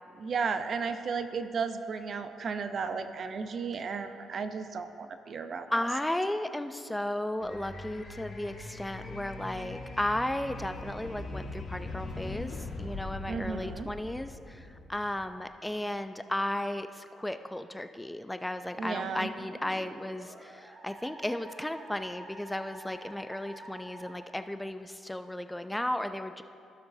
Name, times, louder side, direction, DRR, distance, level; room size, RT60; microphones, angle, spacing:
voice 1, 0.2-5.9 13.3-13.9 18.8-19.3, right 5 dB, 55° right, 9 dB, 0.6 m, -34 dB
voice 2, 5.7-12.5 12.8-14.6 14.9-26.4, left 1 dB, 10° left, 10 dB, 0.3 m, -34 dB
sound 1, 7.4-15.3, left 2 dB, 45° left, 1.4 m, -41 dB
Musical instrument, 18.9-24.1, right 1 dB, 25° right, 1.8 m, -48 dB
16.0 x 6.8 x 2.7 m, 2.4 s
cardioid pair, 90°, 0 cm